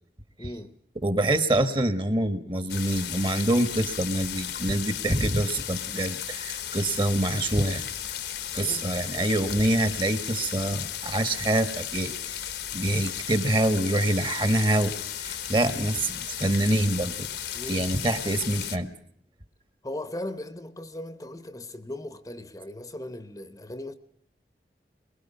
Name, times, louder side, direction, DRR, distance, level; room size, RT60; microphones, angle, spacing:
voice 1, 0.4-0.8 8.6-8.9 17.5-17.9 19.8-23.9, left 1 dB, 20° left, 1.0 m, -38 dB
voice 2, 1.0-7.9 8.5-12.4 12.7-15.0 15.2-17.3 17.7-18.9, right 1 dB, 30° right, 1.4 m, -25 dB
sound 1, 2.7-18.8, left 10 dB, 70° left, 1.4 m, -35 dB
23.0 x 22.5 x 5.6 m
head